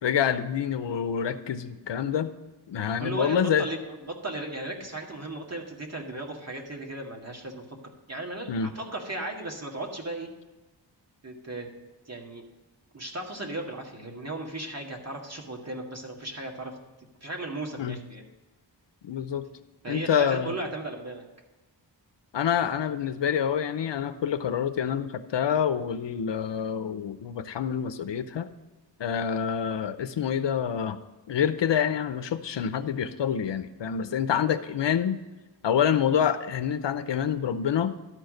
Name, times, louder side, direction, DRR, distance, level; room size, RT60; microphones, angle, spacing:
voice 1, 0.0-2.3 2.7-3.7 8.5-8.7 17.8-18.0 19.0-19.4 19.9-20.5 22.3-28.5 29.0-31.0 31.3-35.2 35.6-37.9, left 8 dB, 75° left, 11 dB, 0.7 m, -27 dB
voice 2, 2.9-7.8 8.1-10.3 11.2-11.7 12.1-12.4 12.9-16.7 17.2-18.2 19.8-21.2, right 2 dB, 35° right, 1 dB, 1.9 m, -36 dB
12.0 x 4.6 x 6.4 m, 1.1 s
wide cardioid pair, 85°, 44 cm